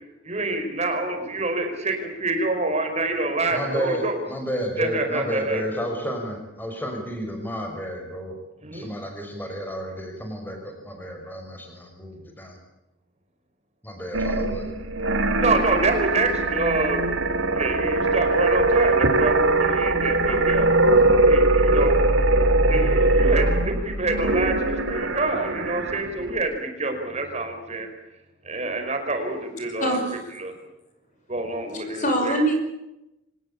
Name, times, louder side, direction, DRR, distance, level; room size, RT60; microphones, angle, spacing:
voice 1, 0.2-4.2 4.8-5.6 8.6-8.9 15.4-17.0 17.5-22.1 22.7-27.9 28.4-30.0 30.4-30.5 31.3-32.4, right 2 dB, 35° right, 5 dB, 5.2 m, -26 dB
voice 2, 3.5-8.3 8.7-12.6 13.8-14.7, equal, 10° left, 3 dB, 5.8 m, -31 dB
sound 1, 14.1-26.4, right 2 dB, 80° right, 2.6 m, -21 dB
voice 3, 29.8-30.3 31.7-32.5, right 1 dB, 40° left, 5 dB, 5.5 m, -24 dB
25.0 x 19.5 x 8.6 m, 0.89 s
head